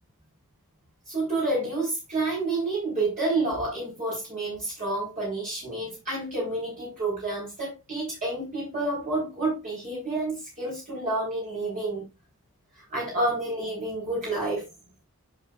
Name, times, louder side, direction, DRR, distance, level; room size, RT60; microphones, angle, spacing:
voice 1, 1.1-12.0 12.8-14.6, right 2 dB, 35° right, -6 dB, 3.9 m, -29 dB
8.7 x 6.8 x 2.3 m, 0.25 s
head